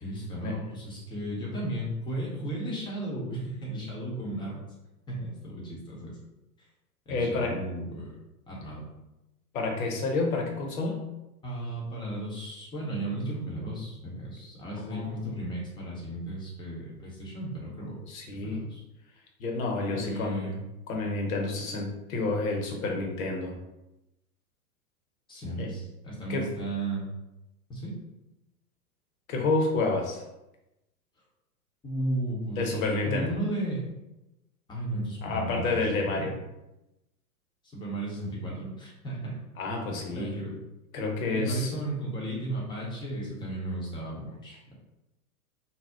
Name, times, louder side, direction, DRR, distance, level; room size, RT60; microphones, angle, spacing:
voice 1, 0.0-4.6 5.1-6.1 7.1-8.1 8.5-8.8 11.4-18.0 18.4-18.8 19.9-20.6 25.3-27.0 27.7-27.9 31.8-33.8 34.7-36.3 37.6-39.4 40.1-40.6 41.3-44.7, right 1 dB, 10° left, -4 dB, 0.7 m, -34 dB
voice 2, 7.1-7.6 9.5-11.0 14.9-15.1 18.1-18.7 19.4-20.5 20.9-23.5 25.6-25.7 26.3-26.5 29.3-30.2 32.5-33.4 35.2-36.4 39.6-40.5 40.9-41.7, left 3 dB, 60° left, 1 dB, 0.9 m, -29 dB
2.7 x 2.0 x 3.4 m, 0.95 s
figure-of-eight pair, 100°, 46 cm